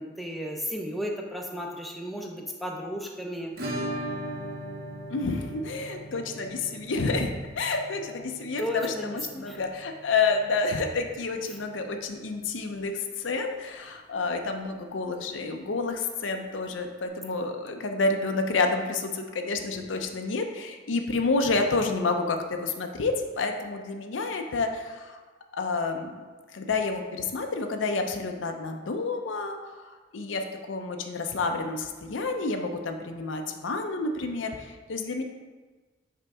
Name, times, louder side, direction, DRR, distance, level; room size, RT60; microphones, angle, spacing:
voice 1, 0.0-3.5 8.6-9.6, equal, ahead, -1 dB, 0.5 m, -34 dB
Acoustic guitar / Strum, 3.6-12.2 12.4-12.5 12.8-12.9 13.3-13.4 15.4-15.5 16.7-16.8, right 1 dB, 50° right, 0.9 m, -39 dB
voice 2, 5.1-25.2 25.5-26.1 26.5-35.2, left 3 dB, 75° left, 5 dB, 0.6 m, -29 dB
5.6 x 5.1 x 3.5 m, 1.3 s
head